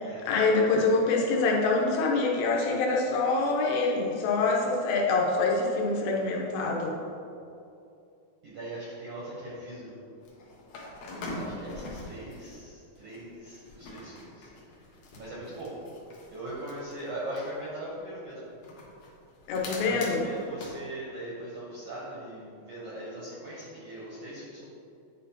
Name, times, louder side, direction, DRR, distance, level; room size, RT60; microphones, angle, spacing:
voice 1, 0.0-7.0 19.5-20.2, left 3 dB, 85° left, -1 dB, 2.7 m, -25 dB
voice 2, 8.4-10.0 11.3-14.5 14.9-15.8 16.3-18.5 19.7-24.7, right 1 dB, 75° right, -7 dB, 1.4 m, -40 dB
sound 1, 10.2-12.6 13.0-17.6 18.6-20.8, left 2 dB, 70° left, 1.7 m, -43 dB
10.0 x 4.3 x 2.8 m, 2.6 s
omnidirectional pair, 4.2 m